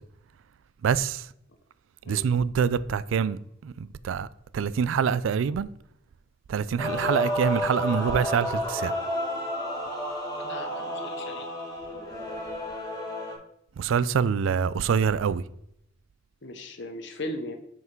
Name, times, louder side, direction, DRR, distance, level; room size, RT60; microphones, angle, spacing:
voice 1, 0.8-1.3 2.1-4.3 4.5-5.7 6.5-9.0 13.8-15.4, right 7 dB, 85° right, 0.4 m, -25 dB
Male singing / Female singing / Musical instrument, 6.8-13.3, left 1 dB, 20° left, 1.6 m, -31 dB
voice 2, 10.4-11.5 16.4-17.5, left 1 dB, 65° left, 1.0 m, -38 dB
5.8 x 5.7 x 4.5 m
head